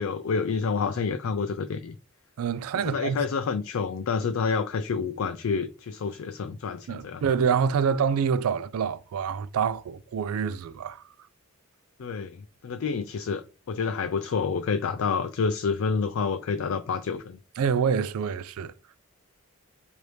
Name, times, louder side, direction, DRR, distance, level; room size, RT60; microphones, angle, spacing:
voice 1, 0.0-2.0 2.8-7.2 12.0-17.4, left 5 dB, 65° left, 0.4 m, -28 dB
voice 2, 2.4-3.2 6.9-11.0 17.6-18.7, right 6 dB, 75° right, 0.3 m, -26 dB
4.8 x 2.7 x 3.1 m
head